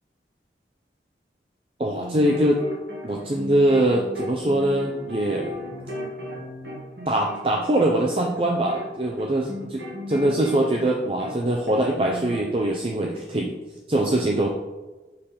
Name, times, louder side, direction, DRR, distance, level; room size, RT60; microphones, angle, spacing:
voice 1, 1.8-2.6 3.0-5.5 7.1-13.6 13.9-14.5, right 1 dB, 30° right, 0 dB, 0.5 m, -23 dB
sound 1, 1.9-11.4 11.7-12.7, equal, 65° right, 1.5 m, -36 dB
6.6 x 3.4 x 5.5 m, 1.2 s
head